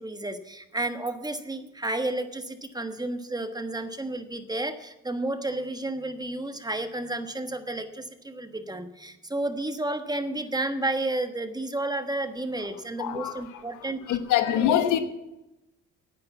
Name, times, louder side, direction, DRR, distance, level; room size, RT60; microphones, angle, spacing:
voice 1, 0.0-14.2 14.6-14.9, right 2 dB, 15° right, 1.2 m, -31 dB
voice 2, 13.0-13.4 13.9-15.0, left 10 dB, 85° left, 1.2 m, -24 dB
9.7 x 9.4 x 8.3 m
cardioid pair, 90°, 30 cm